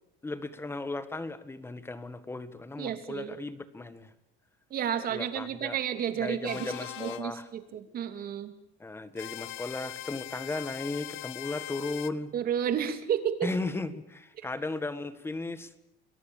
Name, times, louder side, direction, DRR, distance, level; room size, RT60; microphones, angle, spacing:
voice 1, 0.2-4.1 5.1-5.8 6.2-7.5 8.8-12.3 13.4-15.7, left 2 dB, 10° left, 12 dB, 1.8 m, -36 dB
voice 2, 2.8-3.4 4.7-8.5 12.3-13.3, right 9 dB, 45° right, 8 dB, 3.1 m, -31 dB
sound 1, 6.4-7.2 9.2-12.1, left 16 dB, 65° left, 1.5 m, -41 dB
29.0 x 22.5 x 7.4 m, 0.80 s
cardioid pair, 155°, 21 cm